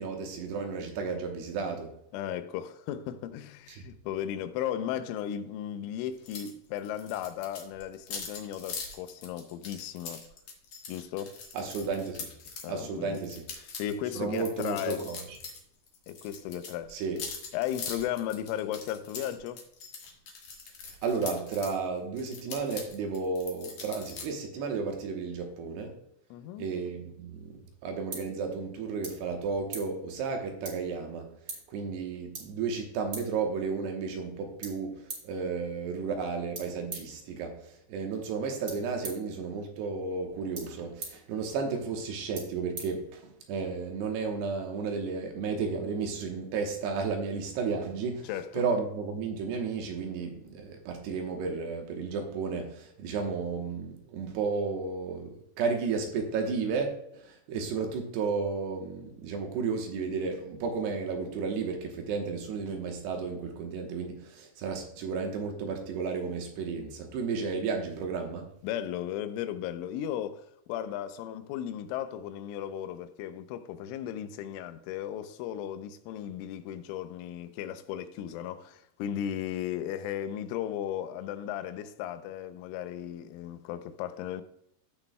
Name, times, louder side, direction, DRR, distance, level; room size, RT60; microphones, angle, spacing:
voice 1, 0.0-1.9 3.7-3.8 11.5-12.3 12.7-13.5 14.2-15.4 16.9-17.2 20.8-26.0 26.6-31.3 31.7-68.5, right 5 dB, 75° right, 2.8 m, -33 dB
voice 2, 2.1-10.2 10.9-11.4 12.6-13.2 13.6-15.0 16.1-17.0 17.5-19.6 26.3-26.7 48.2-48.6 68.6-84.4, left 10 dB, 90° left, 3.1 m, -35 dB
sound 1, 6.3-6.5 6.8-12.7 13.1-15.6 15.9-21.7 22.2-24.2, left 5 dB, 60° left, 1.8 m, -42 dB
sound 2, 27.3-43.6, right 3 dB, 55° right, 1.1 m, -47 dB
15.0 x 6.1 x 2.2 m
omnidirectional pair, 5.5 m